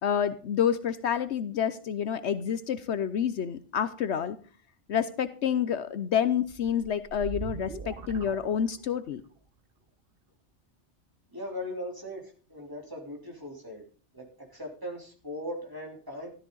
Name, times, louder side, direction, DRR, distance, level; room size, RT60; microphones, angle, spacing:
voice 1, 0.0-4.4 4.9-9.2, left 8 dB, 70° left, 13 dB, 1.0 m, -28 dB
sound 1, 6.4-9.1, right 4 dB, 50° right, 1.3 m, -41 dB
voice 2, 11.3-13.8 14.1-16.3, left 1 dB, 15° right, -1 dB, 3.5 m, -39 dB
13.5 x 13.5 x 3.9 m, 0.39 s
omnidirectional pair, 1.2 m